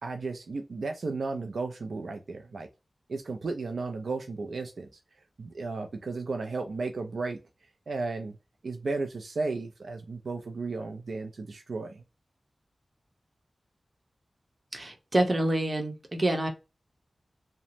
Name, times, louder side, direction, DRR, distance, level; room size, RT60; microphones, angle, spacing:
voice 1, 0.0-2.7 3.1-4.9 5.4-7.4 7.9-8.4 8.6-12.0, right 3 dB, 80° right, 0.4 m, -34 dB
voice 2, 14.7-16.5, right 1 dB, 35° right, 0.8 m, -27 dB
3.0 x 2.0 x 2.6 m
wide cardioid pair, 90°, 0 cm